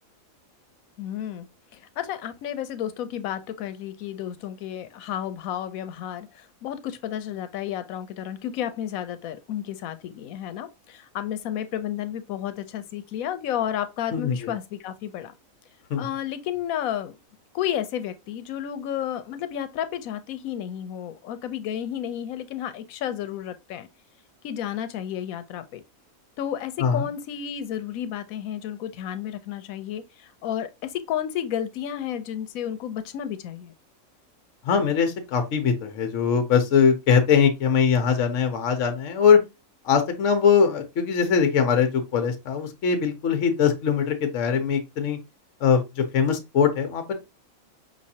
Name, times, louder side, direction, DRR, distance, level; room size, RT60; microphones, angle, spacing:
voice 1, 1.0-1.5 1.7-15.3 16.0-17.2 17.5-23.9 24.4-25.8 26.4-33.7, left 10 dB, 90° left, 1.0 m, -32 dB
voice 2, 14.1-14.5 15.9-16.1 26.8-27.1 34.6-39.4 39.8-45.2 45.6-47.1, left 6 dB, 65° left, 1.0 m, -21 dB
5.3 x 3.1 x 2.7 m
omnidirectional pair, 1.4 m